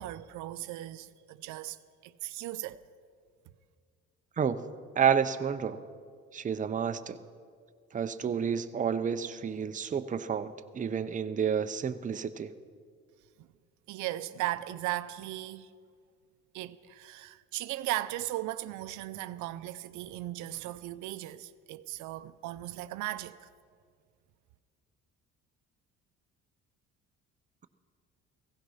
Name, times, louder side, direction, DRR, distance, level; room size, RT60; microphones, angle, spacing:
voice 1, 0.0-1.8 2.0-2.8 13.4-13.5 13.9-15.7 16.5-23.5, right 15 dB, 85° right, 0.6 m, -37 dB
voice 2, 5.0-5.8 6.3-7.2 7.9-12.5, right 7 dB, 25° right, 0.7 m, -30 dB
16.0 x 16.0 x 5.6 m
cardioid pair, 110°, 29 cm